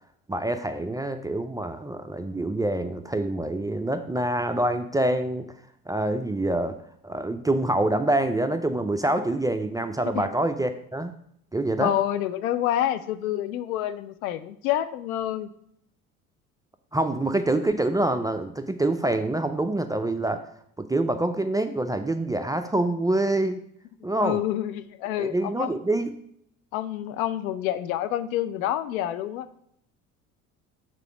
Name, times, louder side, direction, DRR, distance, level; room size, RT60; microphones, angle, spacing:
voice 1, 0.3-5.5 5.9-6.8 7.0-11.1 11.5-11.9 16.9-20.4 20.8-23.6 24.0-24.4 25.2-26.1, right 1 dB, 10° right, 8 dB, 0.4 m, -26 dB
voice 2, 11.8-15.5 24.2-25.8 26.7-29.5, left 12 dB, 70° left, 12 dB, 0.7 m, -28 dB
6.6 x 4.0 x 6.0 m, 0.69 s
figure-of-eight pair, 60°, 44 cm